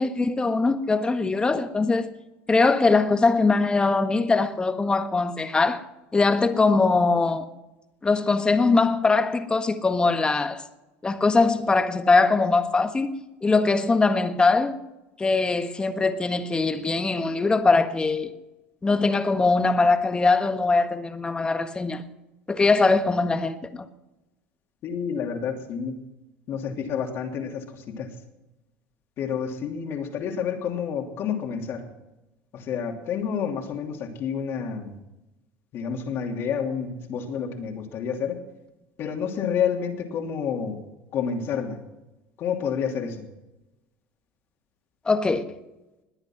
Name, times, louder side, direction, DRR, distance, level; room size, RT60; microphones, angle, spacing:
voice 1, 0.0-2.1 2.5-5.8 6.1-7.5 8.0-10.6 11.0-13.2 13.4-14.8 15.2-18.3 18.8-22.0 22.5-23.7 45.0-45.4, left 3 dB, 20° left, 1.5 m, -21 dB
voice 2, 24.8-25.9 26.5-28.1 29.2-31.8 32.5-34.9 35.7-38.4 39.0-40.8 41.1-41.8 42.4-43.2, left 7 dB, 55° left, 2.9 m, -29 dB
20.5 x 8.8 x 6.1 m
supercardioid pair, 95°, 5 cm